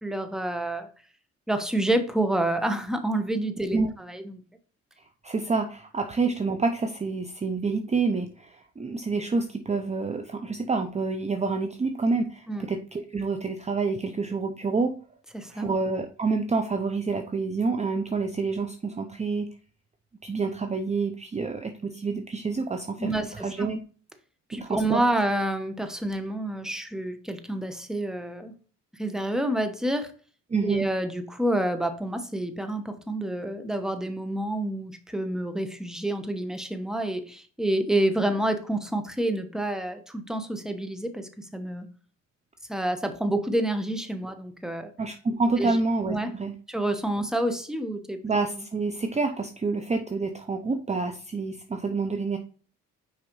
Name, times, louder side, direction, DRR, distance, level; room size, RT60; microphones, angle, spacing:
voice 1, 0.0-0.9 1.5-4.4 12.5-12.7 15.3-15.7 23.0-23.7 24.5-28.5 29.0-30.1 30.6-41.9 42.7-44.9 45.6-45.8 46.1-46.3 46.7-48.2, right 1 dB, ahead, 7 dB, 1.0 m, -28 dB
voice 2, 5.2-14.9 15.5-19.5 20.2-23.8 24.5-25.0 30.5-30.9 45.0-46.5 48.2-52.4, right 4 dB, 20° right, 6 dB, 0.7 m, -28 dB
6.3 x 4.8 x 3.1 m, 0.39 s
cardioid pair, 90°, 30 cm